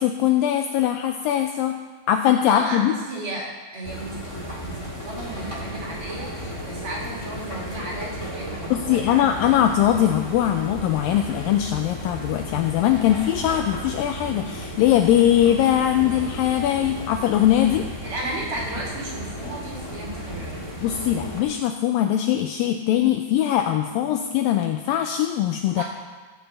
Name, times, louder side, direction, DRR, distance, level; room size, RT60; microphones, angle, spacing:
voice 1, 0.0-1.8 2.1-2.9 8.7-17.8 20.8-25.8, left 11 dB, 85° left, 5 dB, 2.0 m, -21 dB
voice 2, 2.5-9.6 18.0-20.7 25.8-25.9, right 1 dB, 60° right, -4 dB, 3.9 m, -34 dB
sound 1, 3.8-21.4, equal, 40° left, 0.3 m, -34 dB
15.0 x 5.3 x 7.4 m, 1.3 s
omnidirectional pair, 4.6 m